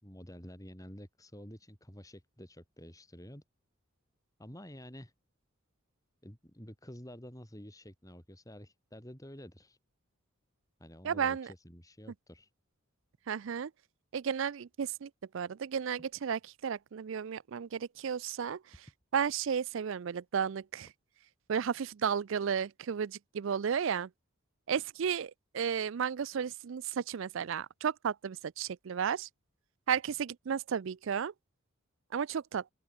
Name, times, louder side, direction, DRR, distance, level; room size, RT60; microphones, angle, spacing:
voice 1, 0.0-3.4 4.4-5.1 6.2-9.8 10.8-12.5, equal, 15° left, 4.2 m, -49 dB
voice 2, 11.0-11.5 13.3-13.7 14.1-18.6 19.1-20.9 21.5-24.1 24.7-29.3 29.9-31.3 32.1-32.6, right 7 dB, 60° right, 0.4 m, -33 dB
open air
head